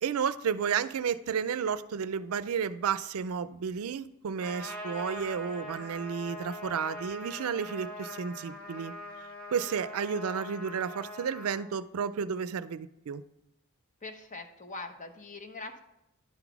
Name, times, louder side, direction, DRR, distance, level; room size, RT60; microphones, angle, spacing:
voice 1, 0.0-8.9 9.5-13.2, right 7 dB, 80° right, 15 dB, 0.4 m, -32 dB
Trumpet, 4.4-11.6, equal, 10° left, 2.0 m, -42 dB
voice 2, 14.0-15.8, left 3 dB, 35° left, 6 dB, 0.8 m, -42 dB
10.5 x 4.0 x 5.9 m, 0.85 s
head